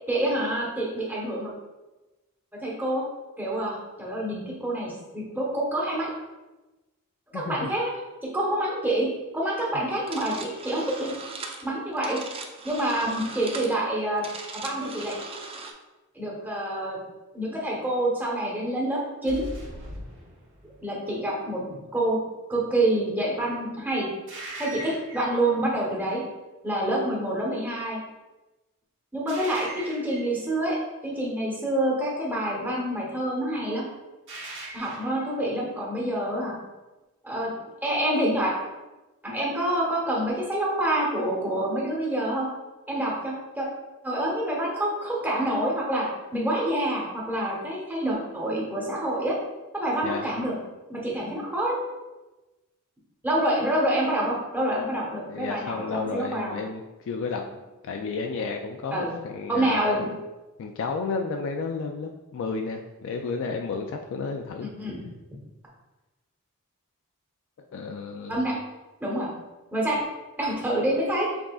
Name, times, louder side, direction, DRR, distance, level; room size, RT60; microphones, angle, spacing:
voice 1, 0.1-1.5 2.6-3.0 3.4-6.1 7.3-7.9 8.3-11.1 11.6-12.2 12.6-14.2 14.5-15.2 16.1-17.0 17.3-19.5 20.8-22.2 22.5-24.1 24.6-26.2 26.6-28.0 29.1-33.8 34.7-36.6 37.2-37.5 37.8-38.5 39.2-42.5 42.9-43.7 44.0-46.1 46.3-49.4 49.7-50.5 50.9-51.8 53.2-56.5 58.9-59.1 59.5-60.1 64.6-65.0 68.3-68.5 69.0-69.3 69.7-70.0 70.4-71.3, right 1 dB, 10° right, -4 dB, 1.1 m, -27 dB
voice 2, 7.3-7.7 50.0-50.2 55.3-57.4 57.8-59.8 60.6-64.7 67.7-68.4, left 4 dB, 60° left, 3 dB, 0.3 m, -32 dB
sound 1, 10.0-15.7, right 4 dB, 25° right, 0.4 m, -39 dB
sound 2, 19.3-20.9 24.3-25.5 29.3-30.4 34.3-35.2, right 1 dB, 60° right, 1.4 m, -39 dB
6.0 x 3.7 x 2.3 m, 1.1 s
head